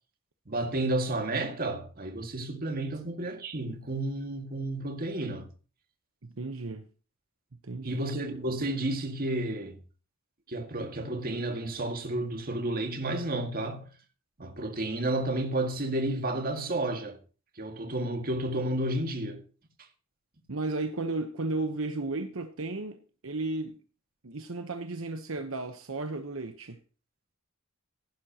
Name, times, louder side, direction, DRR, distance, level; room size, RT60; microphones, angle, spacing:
voice 1, 0.5-5.5 7.8-9.8 10.5-13.9 14.4-17.2 17.6-19.4, right 1 dB, 45° right, 1.9 m, -31 dB
voice 2, 6.2-6.9 7.6-8.0 20.5-23.0 23.2-23.8 24.2-26.8, right 2 dB, 70° right, 1.0 m, -34 dB
15.0 x 11.5 x 2.9 m
head